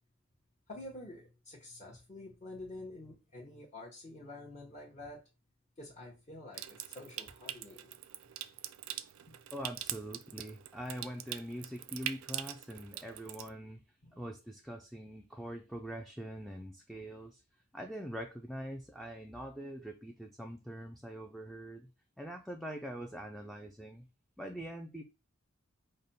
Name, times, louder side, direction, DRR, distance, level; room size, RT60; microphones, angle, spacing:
voice 1, 0.7-5.2 5.8-7.9 9.3-9.4 14.0-14.2, left 2 dB, 35° left, 1.0 m, -48 dB
Water tap faucet / Sink (filling or washing) / Trickle dribble, 6.5-13.5, right 12 dB, 80° right, 0.4 m, -43 dB
voice 2, 9.5-13.8 14.1-17.4 17.7-21.9 22.2-24.1 24.4-25.0, equal, ahead, 0.4 m, -43 dB
5.0 x 2.2 x 4.0 m
head